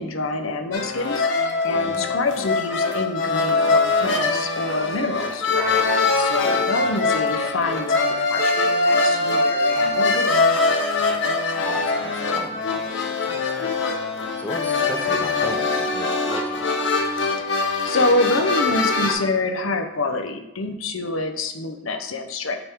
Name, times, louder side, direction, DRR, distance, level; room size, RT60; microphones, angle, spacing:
voice 1, 0.0-10.3 17.4-22.6, left 2 dB, 90° left, 6 dB, 0.8 m, -27 dB
sound 1, 0.7-19.1, left 3 dB, 65° left, 1.0 m, -22 dB
voice 2, 1.7-2.1 6.9-7.1 11.6-13.7 14.4-16.7, left 1 dB, 10° left, 3 dB, 0.6 m, -37 dB
8.9 x 3.6 x 4.5 m, 0.94 s
head